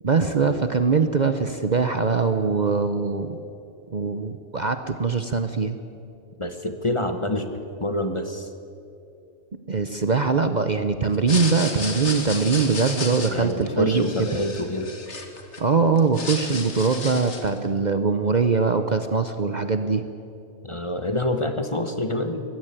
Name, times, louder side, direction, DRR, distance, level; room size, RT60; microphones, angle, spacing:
voice 1, 0.0-3.4 3.9-5.8 9.7-14.0 15.6-20.0, right 4 dB, 40° right, 9 dB, 0.8 m, -22 dB
voice 2, 6.4-7.5 7.8-8.5 13.3-14.9 20.6-22.4, left 1 dB, 25° left, 7 dB, 1.1 m, -26 dB
sound 1, 11.1-15.6 16.0-17.6, left 3 dB, 65° left, 2.2 m, -33 dB
20.0 x 15.5 x 9.0 m, 2.6 s
omnidirectional pair, 1.3 m